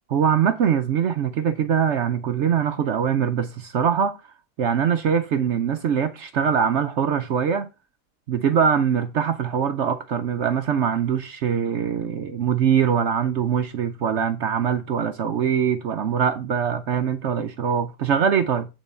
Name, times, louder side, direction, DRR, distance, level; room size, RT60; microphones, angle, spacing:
voice 1, 0.1-4.2 4.6-7.7 8.3-18.7, right 7 dB, 65° right, 0.8 m, -22 dB
9.0 x 3.9 x 5.3 m
omnidirectional pair, 1.6 m